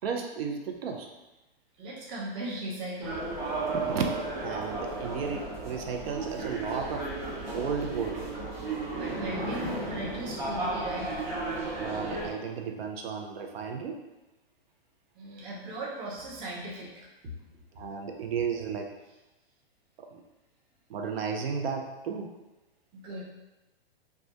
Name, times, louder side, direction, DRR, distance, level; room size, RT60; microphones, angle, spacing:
voice 1, 0.0-1.1 3.7-4.1 4.4-7.0 7.5-8.2 11.8-14.0 17.8-18.9 20.1-20.2 20.9-22.3, right 6 dB, 75° right, 3 dB, 0.5 m, -33 dB
voice 2, 1.8-3.3 8.9-11.1 15.2-17.5 22.9-23.2, right 1 dB, 15° right, -5 dB, 0.4 m, -38 dB
sound 1, 3.0-12.3, right 2 dB, 45° right, 0.8 m, -34 dB
2.2 x 2.1 x 2.7 m, 1.0 s
hypercardioid pair, 130°, 31 cm